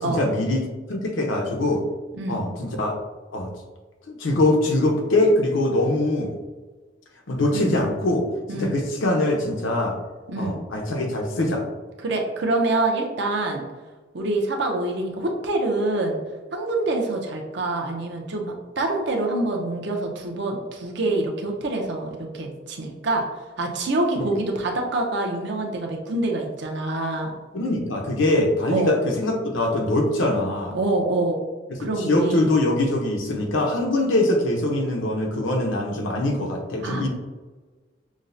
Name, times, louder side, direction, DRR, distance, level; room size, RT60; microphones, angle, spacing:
voice 1, 0.0-1.8 2.3-2.9 3.3-3.5 4.1-6.3 7.3-8.2 8.5-10.0 10.4-11.6 24.2-24.3 27.5-30.7 31.8-37.1, left 1 dB, 90° left, 1 dB, 0.8 m, -23 dB
voice 2, 12.0-13.6 14.1-16.2 16.5-23.2 23.6-27.3 28.7-29.0 30.7-31.4 31.8-32.5 36.8-37.1, right 2 dB, 65° right, 1 dB, 0.7 m, -26 dB
6.1 x 2.1 x 2.6 m, 1.3 s
head